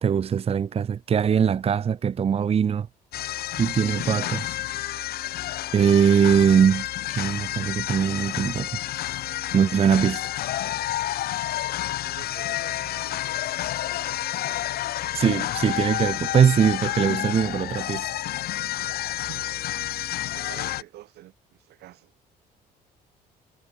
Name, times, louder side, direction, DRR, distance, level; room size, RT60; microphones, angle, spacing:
voice 1, 0.0-2.9 3.6-4.6 5.7-8.8 9.5-10.3 15.1-18.1, right 7 dB, 35° right, 1.0 m, -21 dB
sound 1, 3.1-20.8, left 14 dB, 65° left, 1.2 m, -30 dB
voice 2, 12.0-13.2 19.2-19.5 20.3-22.3, right 16 dB, 80° right, 2.6 m, -47 dB
cardioid pair, 110°, 17 cm